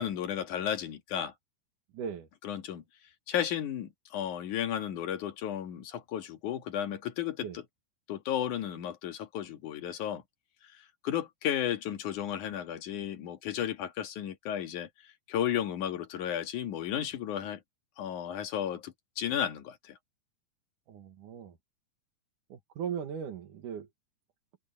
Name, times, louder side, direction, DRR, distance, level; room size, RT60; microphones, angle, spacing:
voice 1, 0.0-1.3 2.4-2.8 3.3-7.6 8.1-10.2 11.0-14.9 15.3-17.6 18.0-20.0, left 10 dB, 65° left, 3.1 m, -33 dB
voice 2, 1.9-2.3 7.4-7.6 20.9-21.6 22.5-23.9, right 7 dB, 70° right, 3.1 m, -38 dB
omnidirectional pair, 3.9 m